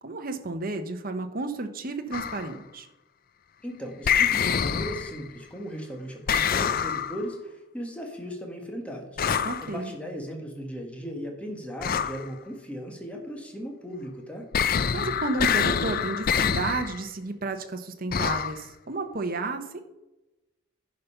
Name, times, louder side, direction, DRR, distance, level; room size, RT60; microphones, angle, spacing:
voice 1, 0.0-2.9 9.4-9.9 14.9-19.8, right 3 dB, 45° right, 6 dB, 1.0 m, -32 dB
sound 1, 2.1-2.5 4.1-5.3 6.3-7.3 9.2-9.7 11.8-12.3 14.5-17.0 18.1-18.6, left 7 dB, 45° left, 0.4 m, -26 dB
voice 2, 3.6-9.2 9.6-14.5, equal, 5° left, 2 dB, 1.5 m, -37 dB
10.5 x 5.3 x 5.5 m, 0.96 s
head